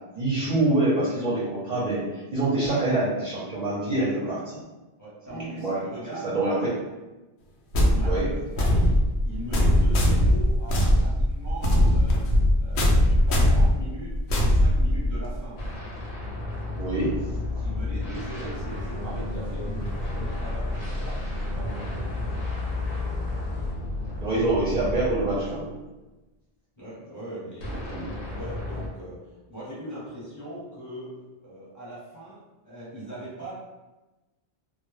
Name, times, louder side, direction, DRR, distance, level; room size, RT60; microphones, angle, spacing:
voice 1, 0.1-4.4 5.3-5.8 6.2-6.7 8.0-8.3 16.8-17.2 24.2-25.7 27.9-28.1, right 2 dB, 50° right, -9 dB, 0.6 m, -25 dB
voice 2, 5.0-6.3 7.8-12.2 12.6-15.6 17.6-22.1 26.8-33.5, right 1 dB, 20° left, -10 dB, 0.8 m, -40 dB
sound 1, 7.7-15.4, equal, 90° left, 0.8 m, -21 dB
sound 2, 15.6-25.8 27.6-28.9, left 2 dB, 60° left, 0.7 m, -32 dB
sound 3, 18.7-23.7, left 1 dB, 40° left, 0.3 m, -39 dB
2.1 x 2.0 x 3.0 m, 1.1 s
omnidirectional pair, 1.1 m